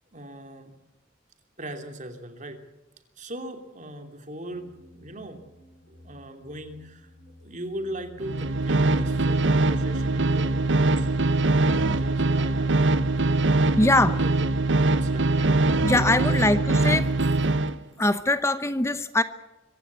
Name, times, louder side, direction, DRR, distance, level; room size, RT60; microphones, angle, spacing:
voice 1, 0.1-0.7 1.6-2.6 3.2-5.4 5.8-11.1 11.9-14.3 14.7-16.5, right 1 dB, 40° right, 5 dB, 3.0 m, -39 dB
sound 1, 4.5-9.8, left 1 dB, 60° left, 7.4 m, -52 dB
sound 2, 8.2-17.8, right 2 dB, 70° right, 0.9 m, -22 dB
voice 2, 13.8-14.2 15.8-17.1 18.0-19.2, left 2 dB, 15° left, 12 dB, 0.9 m, -22 dB
25.0 x 16.0 x 8.4 m, 1.0 s
head